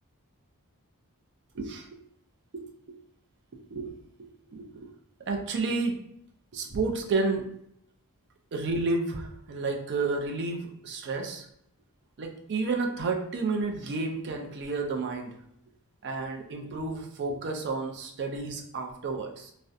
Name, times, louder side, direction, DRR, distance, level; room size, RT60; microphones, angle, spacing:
voice 1, 1.5-2.0 2.5-3.0 3.5-4.9 5.3-6.0 6.5-7.5 8.5-11.5 12.2-15.4 16.0-19.5, right 3 dB, 50° right, 3 dB, 0.4 m, -31 dB
2.4 x 2.1 x 2.6 m, 0.75 s
head